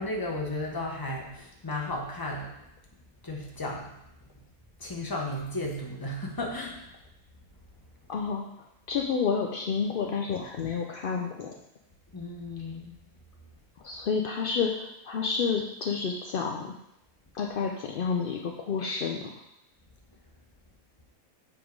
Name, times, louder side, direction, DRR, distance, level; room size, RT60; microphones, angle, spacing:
voice 1, 0.0-2.5 3.2-3.9 4.8-6.8 12.1-13.0, left 1 dB, 20° left, -1 dB, 0.8 m, -34 dB
voice 2, 8.1-8.5 8.9-11.5 13.8-16.7 17.3-19.3, left 5 dB, 70° left, 1 dB, 0.5 m, -30 dB
7.1 x 3.6 x 4.6 m, 0.82 s
omnidirectional pair, 1.5 m